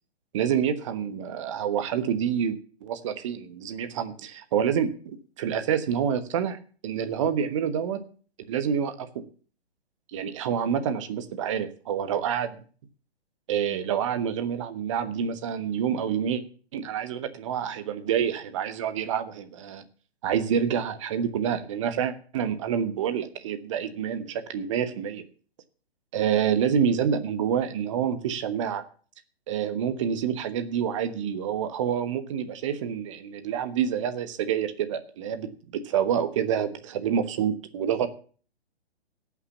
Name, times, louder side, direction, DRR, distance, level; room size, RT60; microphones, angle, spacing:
voice 1, 0.3-6.6 6.8-8.0 8.5-9.2 10.1-12.6 13.5-16.4 16.7-19.8 20.2-25.3 26.1-28.8 29.5-38.1, right 8 dB, 30° right, 10 dB, 1.2 m, -27 dB
17.5 x 6.0 x 7.1 m, 0.41 s
figure-of-eight pair, 130°, 32 cm